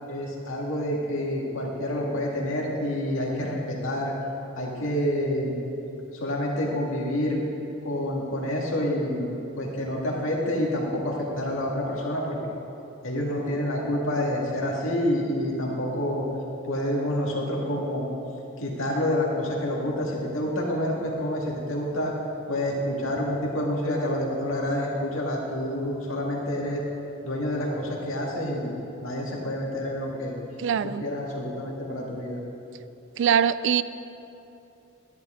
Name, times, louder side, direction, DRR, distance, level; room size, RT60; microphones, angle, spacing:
voice 1, 0.1-4.1 4.6-5.6 6.2-7.4 7.8-9.3 9.6-12.4 13.0-16.3 16.7-18.1 18.6-22.1 22.5-26.8 27.2-28.7 29.0-30.3 30.8-32.4, left 1 dB, 70° left, -2 dB, 2.0 m, -28 dB
voice 2, 30.6-31.0 33.2-33.8, right 8 dB, 60° right, 15 dB, 0.3 m, -22 dB
13.5 x 11.0 x 3.8 m, 2.9 s
head